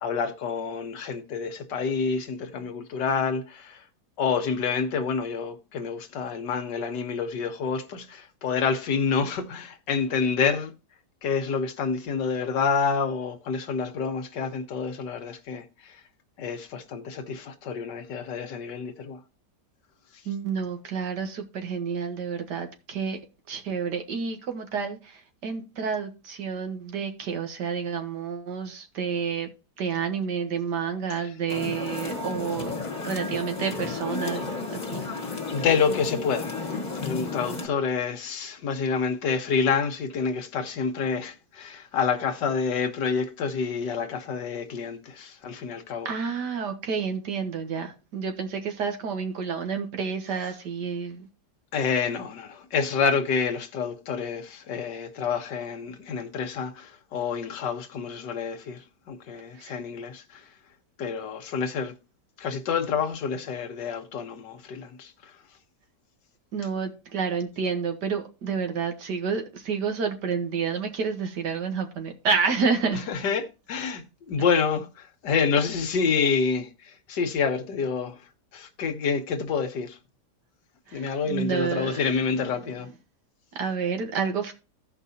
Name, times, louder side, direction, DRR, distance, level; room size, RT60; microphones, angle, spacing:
voice 1, 0.0-3.8 4.2-10.7 11.2-16.0 16.4-19.2 31.2-31.3 35.5-36.7 36.9-46.1 51.7-60.4 61.0-61.9 62.4-65.3 72.9-78.2 78.5-80.0 80.9-82.9, left 5 dB, 85° left, 1.7 m, -28 dB
voice 2, 20.3-23.2 23.5-29.5 29.8-32.7 33.0-35.1 46.1-51.3 59.5-59.8 66.5-73.3 80.9-82.0 83.5-84.5, right 6 dB, 75° right, 1.9 m, -29 dB
sound 1, 31.5-37.7, left 3 dB, 25° left, 1.3 m, -33 dB
15.5 x 5.3 x 2.8 m
omnidirectional pair, 1.8 m